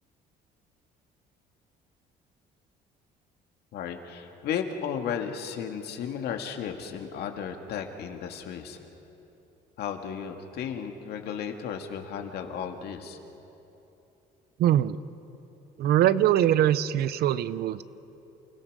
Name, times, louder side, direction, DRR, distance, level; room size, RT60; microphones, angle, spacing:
voice 1, 3.7-8.8 9.8-13.2, left 7 dB, 75° left, 4 dB, 2.1 m, -34 dB
voice 2, 14.6-15.0 15.8-17.8, right 11 dB, 70° right, 16 dB, 0.7 m, -22 dB
29.0 x 17.0 x 6.7 m, 3.0 s
cardioid pair, 110°, 17 cm